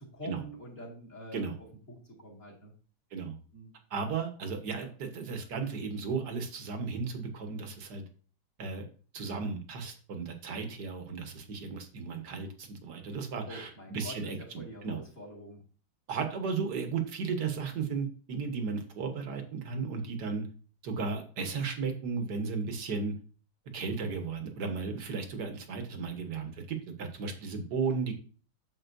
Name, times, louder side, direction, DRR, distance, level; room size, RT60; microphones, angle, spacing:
voice 1, 0.1-1.5 1.9-2.7 3.5-3.7 13.5-15.6, left 1 dB, 35° left, -2 dB, 2.6 m, -46 dB
voice 2, 3.9-8.0 8.6-8.8 9.1-15.0 16.1-20.5 20.8-23.1 23.7-28.2, right 5 dB, 55° right, 6 dB, 1.6 m, -35 dB
9.1 x 7.2 x 2.6 m, 0.40 s
omnidirectional pair, 2.3 m